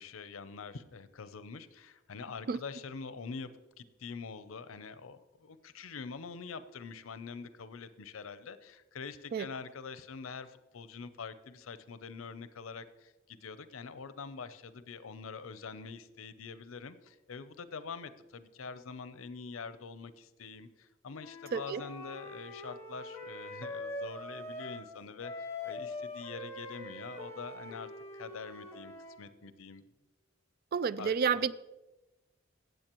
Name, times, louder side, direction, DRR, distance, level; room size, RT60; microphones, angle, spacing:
voice 1, 0.0-3.5 3.8-29.8 31.0-31.5, left 5 dB, 90° left, 0.6 m, -45 dB
Wind instrument woodwind instrument, 21.1-24.9 25.2-29.2, left 2 dB, 15° left, 1.4 m, -43 dB
voice 2, 21.5-21.8 30.7-31.5, right 6 dB, 50° right, 0.3 m, -30 dB
15.5 x 7.9 x 3.0 m
head